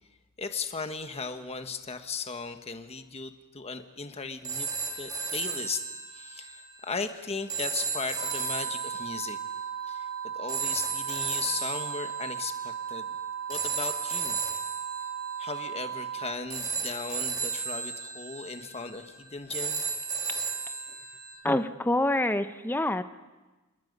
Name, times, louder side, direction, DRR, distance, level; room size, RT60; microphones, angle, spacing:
voice 1, 0.4-4.7 5.0-5.8 6.1-9.4 9.9-10.1 10.3-13.1 13.5-14.4 15.4-19.8, left 4 dB, 30° left, 8 dB, 1.2 m, -37 dB
sound 1, 4.4-21.3, right 5 dB, 15° right, 2.8 m, -35 dB
sound 2, 8.2-16.3, right 8 dB, 45° right, 1.2 m, -36 dB
voice 2, 21.4-23.0, left 1 dB, 10° left, 10 dB, 0.7 m, -26 dB
28.0 x 21.0 x 5.4 m, 1.2 s
head